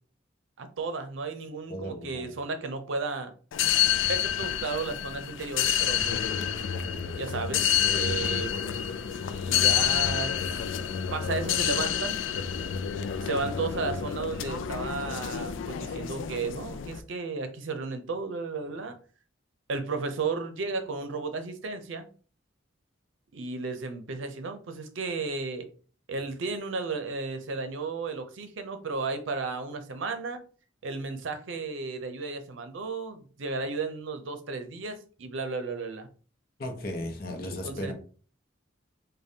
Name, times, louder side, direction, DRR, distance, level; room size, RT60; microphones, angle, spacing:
voice 1, 0.6-3.3 4.1-6.3 7.2-8.5 9.5-10.4 11.1-12.2 13.2-19.0 19.7-22.1 23.3-25.7 26.1-30.4 30.8-36.1 37.6-37.9, right 4 dB, 75° right, 0.6 m, -34 dB
voice 2, 1.7-2.3 36.6-37.9, left 1 dB, 50° left, 0.7 m, -35 dB
sound 1, 3.5-17.0, left 9 dB, 75° left, 0.3 m, -28 dB
5.0 x 2.2 x 2.7 m
head